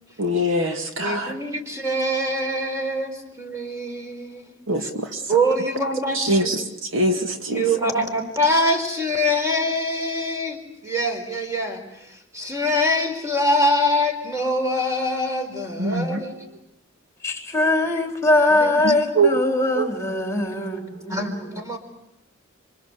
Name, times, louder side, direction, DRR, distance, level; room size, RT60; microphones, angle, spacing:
voice 1, 0.2-1.3 4.7-5.1 6.2-6.6 6.9-7.6 15.8-16.2 18.8-19.3 19.8-19.9, right 1 dB, 65° right, 2.2 m, -22 dB
voice 2, 1.0-4.5 4.8-4.9 5.3-6.6 7.5-16.3 18.5-18.8 21.1-21.8, equal, 15° right, 4.8 m, -24 dB
voice 3, 17.2-21.5, left 2 dB, 15° left, 3.9 m, -22 dB
27.0 x 25.0 x 8.2 m
head